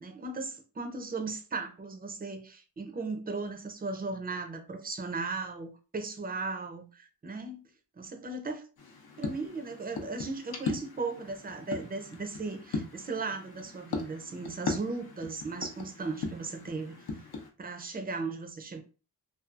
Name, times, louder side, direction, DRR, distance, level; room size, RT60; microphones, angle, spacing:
voice 1, 0.0-7.6 8.0-8.6 9.2-17.0 17.6-18.8, right 3 dB, 20° right, 0.5 m, -37 dB
sound 1, 8.8-17.5, left 4 dB, 60° left, 0.7 m, -39 dB
2.6 x 2.3 x 2.4 m
cardioid pair, 70°, 41 cm